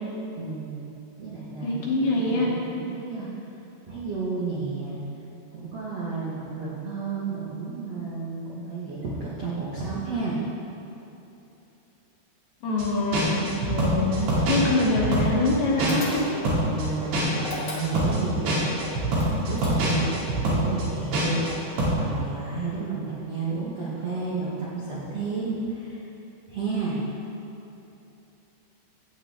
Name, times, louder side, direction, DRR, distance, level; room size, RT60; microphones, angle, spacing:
voice 1, 0.3-3.3 3.9-5.0 5.5-10.4 16.6-18.7 19.1-21.7 21.9-26.0 26.5-27.0, right 4 dB, 85° right, -7 dB, 1.4 m, -32 dB
voice 2, 1.6-2.5 12.6-16.4, left 2 dB, 70° left, -3 dB, 2.6 m, -25 dB
sound 1, 12.8-12.9 13.1-16.2 16.5-21.5 21.8-22.0, right 1 dB, 65° right, 4.0 m, -25 dB
sound 2, 15.9-16.6 17.4-18.3 19.1-20.1, left 2 dB, 90° left, 0.9 m, -37 dB
16.0 x 8.1 x 3.5 m, 3.0 s
omnidirectional pair, 5.4 m